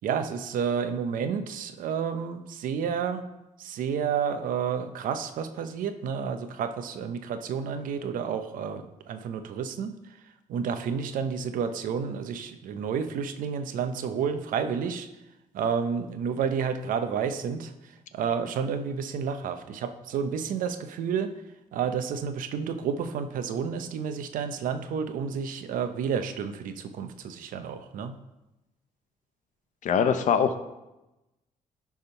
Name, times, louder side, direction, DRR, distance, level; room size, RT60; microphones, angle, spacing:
voice 1, 0.0-3.2 3.6-9.9 10.5-15.1 15.5-21.3 21.7-28.2, right 7 dB, 75° right, 9 dB, 0.7 m, -30 dB
voice 2, 29.8-30.6, left 7 dB, 60° left, 9 dB, 0.8 m, -22 dB
10.5 x 3.6 x 5.5 m, 0.98 s
cardioid pair, 80°, 14 cm